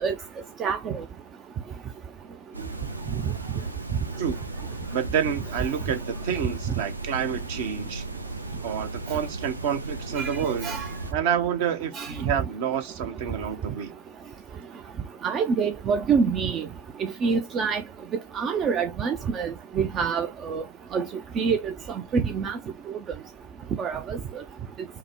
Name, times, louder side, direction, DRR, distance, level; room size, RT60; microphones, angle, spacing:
voice 1, 0.6-1.0 10.2-10.9 11.9-12.1 15.2-16.7 17.0-17.8 18.3-20.6 20.9-21.1 21.4-21.7 22.1-22.6 22.9-23.0 23.8-24.2, right 6 dB, 30° right, 0.5 m, -26 dB
sound 1, 2.5-11.1, right 2 dB, 85° right, 0.6 m, -36 dB
voice 2, 4.9-8.0 8.6-10.7 11.1-13.9, right 8 dB, 50° right, 1.0 m, -28 dB
5.6 x 2.1 x 3.4 m
figure-of-eight pair, 90°, 0 cm